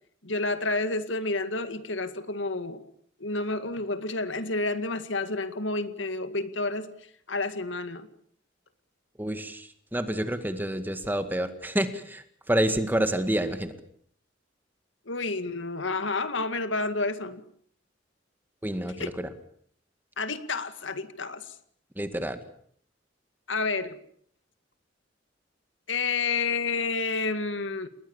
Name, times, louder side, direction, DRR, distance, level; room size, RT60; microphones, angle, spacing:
voice 1, 0.2-2.8 3.2-6.9 7.3-8.1 15.1-17.4 19.0-19.1 20.2-21.5 23.5-24.0 25.9-27.9, left 3 dB, 80° left, 11 dB, 2.0 m, -30 dB
voice 2, 9.2-13.7 18.6-19.3 22.0-22.4, right 1 dB, 10° right, 9 dB, 2.0 m, -28 dB
29.0 x 21.0 x 7.3 m, 0.63 s
head